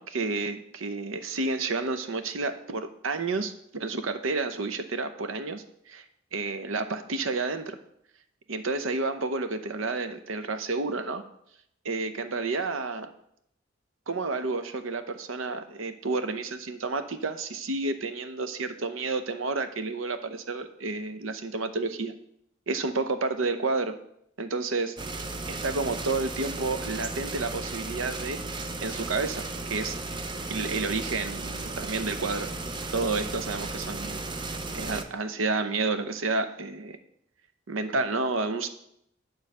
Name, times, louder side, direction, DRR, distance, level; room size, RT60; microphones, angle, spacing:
voice 1, 0.0-6.0 6.3-7.8 8.5-11.2 11.8-13.1 14.1-22.1 22.7-24.0 24.4-25.0 25.5-28.4 28.8-30.0 30.5-32.5 32.9-34.2 34.7-37.0 37.7-38.7, right 3 dB, 80° right, 9 dB, 0.7 m, -30 dB
sound 1, 25.0-35.0, right 2 dB, 25° right, 0.5 m, -35 dB
9.4 x 4.0 x 6.6 m, 0.74 s
head